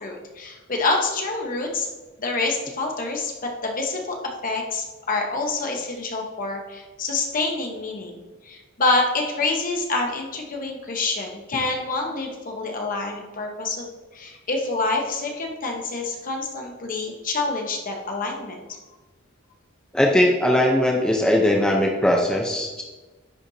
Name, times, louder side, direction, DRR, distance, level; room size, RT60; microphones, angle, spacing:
voice 1, 0.0-1.9 2.2-4.2 4.4-18.8, left 3 dB, 45° left, 2 dB, 1.0 m, -27 dB
voice 2, 19.9-22.8, left 1 dB, 5° left, -1 dB, 0.6 m, -20 dB
10.0 x 4.4 x 2.7 m, 1.2 s
head